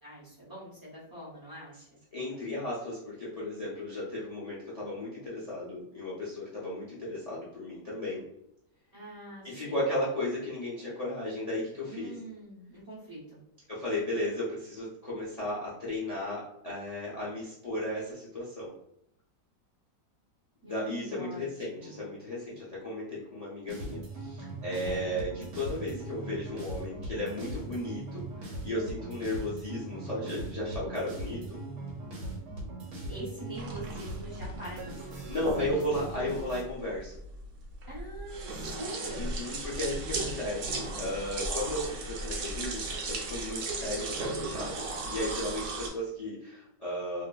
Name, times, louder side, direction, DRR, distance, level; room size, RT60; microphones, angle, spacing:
voice 1, 0.0-1.9 8.9-9.9 11.8-13.4 20.6-22.1 24.7-25.2 33.1-36.3 37.9-39.4, right 1 dB, 30° right, -8 dB, 0.3 m, -44 dB
voice 2, 2.1-8.2 9.4-12.1 13.7-18.7 20.6-31.6 35.3-37.2 39.2-47.2, left 1 dB, 70° left, -7 dB, 0.3 m, -35 dB
sound 1, 23.7-36.6, right 2 dB, 85° right, 1.3 m, -40 dB
sound 2, 33.5-45.9, right 3 dB, 70° right, 0.9 m, -36 dB
2.7 x 2.4 x 2.2 m, 0.75 s
omnidirectional pair, 1.8 m